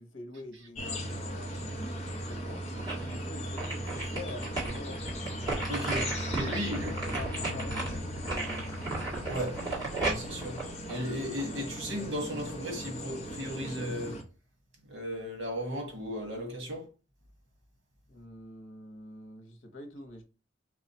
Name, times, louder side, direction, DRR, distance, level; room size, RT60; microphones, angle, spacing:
voice 1, 0.0-2.6 3.1-5.0 6.4-8.7 11.5-11.7 18.1-20.2, left 2 dB, 80° left, 1.0 m, -46 dB
sound 1, 0.8-14.2, equal, 35° left, 0.8 m, -38 dB
sound 2, 2.3-3.2 3.6-11.6 12.1-12.2, right 2 dB, 20° right, 1.7 m, -35 dB
sound 3, 5.4-13.6, left 4 dB, 55° left, 0.4 m, -49 dB
voice 2, 5.7-6.9 9.3-9.6 9.9-10.6 10.9-14.2 14.9-16.9, equal, 60° right, 1.6 m, -36 dB
4.8 x 2.3 x 4.2 m
head